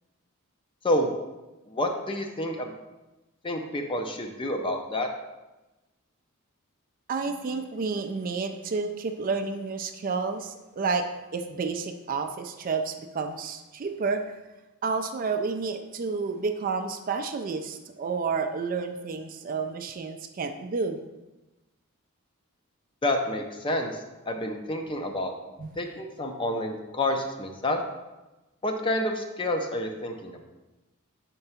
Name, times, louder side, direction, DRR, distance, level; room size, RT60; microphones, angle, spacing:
voice 1, 1.7-2.7 3.4-5.1 23.0-24.0 24.3-25.3 25.8-27.8 28.6-30.4, left 1 dB, 25° left, 4 dB, 0.5 m, -29 dB
voice 2, 7.1-11.1 11.3-14.2 14.8-21.0 25.6-25.7, right 4 dB, 40° right, 7 dB, 0.3 m, -30 dB
4.5 x 3.8 x 5.6 m, 1.1 s
head